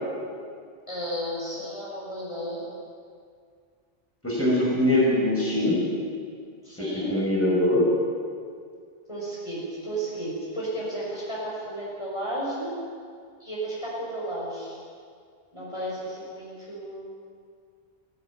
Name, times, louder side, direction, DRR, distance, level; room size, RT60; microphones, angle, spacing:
voice 1, 0.9-2.7 6.6-7.1 9.1-12.7 13.4-14.8 15.5-17.1, right 1 dB, 25° left, -6 dB, 6.2 m, -33 dB
voice 2, 4.2-5.8 6.8-7.9, left 1 dB, 10° left, -6 dB, 6.0 m, -22 dB
18.5 x 17.5 x 9.0 m, 2.1 s
omnidirectional pair, 1.1 m